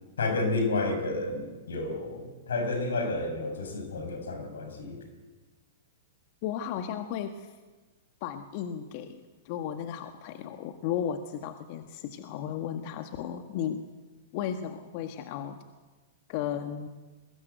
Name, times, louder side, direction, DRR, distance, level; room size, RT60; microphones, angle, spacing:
voice 1, 0.2-5.0, left 2 dB, 80° left, 6 dB, 5.4 m, -31 dB
voice 2, 6.4-7.5 8.2-13.9 14.3-15.6 16.3-16.9, left 9 dB, 50° left, 7 dB, 1.6 m, -34 dB
23.0 x 20.5 x 8.1 m, 1.3 s
hypercardioid pair, 110°, 0 cm